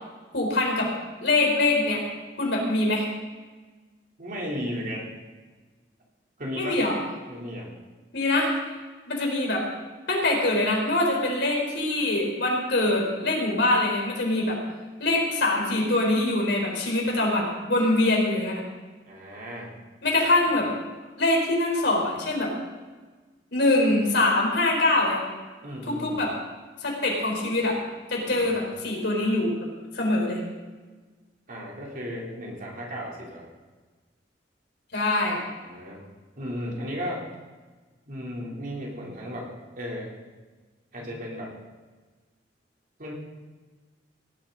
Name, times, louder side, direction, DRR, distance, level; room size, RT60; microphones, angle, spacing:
voice 1, 0.3-0.9 1.2-2.0 2.4-3.1 6.5-6.9 8.1-8.5 9.1-9.6 10.1-14.6 15.0-18.6 20.0-20.7 21.2-22.5 23.5-25.2 25.9-26.3 26.8-27.8 28.1-29.5 29.9-30.4 34.9-35.4, left 2 dB, 70° left, 0 dB, 4.3 m, -23 dB
voice 2, 4.2-5.1 6.4-6.8 7.3-7.7 19.0-19.7 20.5-20.6 25.6-26.3 28.2-28.7 31.5-33.5 35.6-36.0 36.4-37.3 38.1-39.5 39.8-40.1 40.9-41.6 43.0-43.1, equal, 50° right, -3 dB, 3.7 m, -35 dB
18.0 x 11.5 x 4.1 m, 1.3 s
head